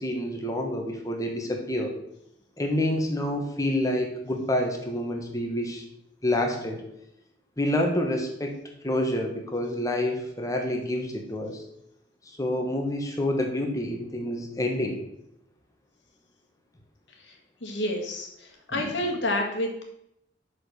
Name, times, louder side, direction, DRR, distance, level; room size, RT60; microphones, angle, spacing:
voice 1, 0.0-1.9 2.6-5.8 6.2-6.8 7.6-8.6 8.8-11.6 12.2-15.0 18.7-19.0, left 1 dB, 15° left, 2 dB, 1.3 m, -28 dB
voice 2, 17.2-19.8, left 1 dB, 70° left, 1 dB, 1.9 m, -30 dB
6.2 x 5.2 x 6.3 m, 0.77 s
head